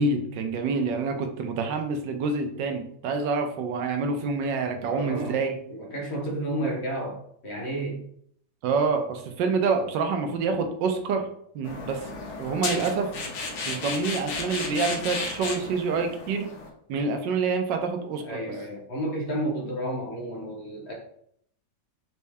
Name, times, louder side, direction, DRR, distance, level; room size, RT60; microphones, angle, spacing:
voice 1, 0.0-5.5 8.6-11.3 11.5-13.1 13.6-16.5 16.9-18.4, right 4 dB, 90° right, 5 dB, 1.3 m, -27 dB
voice 2, 4.8-5.4 5.7-8.0 18.2-20.9, right 1 dB, 45° left, -1 dB, 1.0 m, -31 dB
sound 1, 11.6-16.7, left 4 dB, 65° left, 1.2 m, -34 dB
4.3 x 2.7 x 3.4 m, 0.68 s
omnidirectional pair, 1.9 m